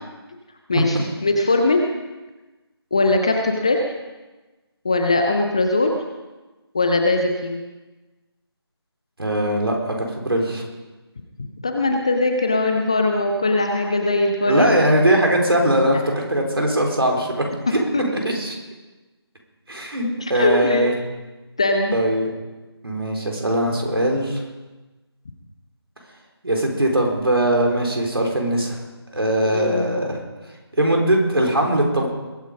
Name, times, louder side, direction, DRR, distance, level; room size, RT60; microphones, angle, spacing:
voice 1, 0.7-1.8 2.9-3.8 4.8-5.9 6.7-7.6 11.6-14.7 17.9-18.2 20.2-20.9 21.6-22.0 29.4-29.9, left 2 dB, 15° left, 3 dB, 0.5 m, -20 dB
voice 2, 9.2-10.6 14.4-17.8 18.2-18.6 19.7-20.9 21.9-22.3 22.8-24.4 26.4-28.8 29.1-30.2 30.8-32.1, right 1 dB, 65° right, 0 dB, 4.3 m, -20 dB
21.5 x 9.2 x 5.2 m, 1.2 s
figure-of-eight pair, 160°, 14 cm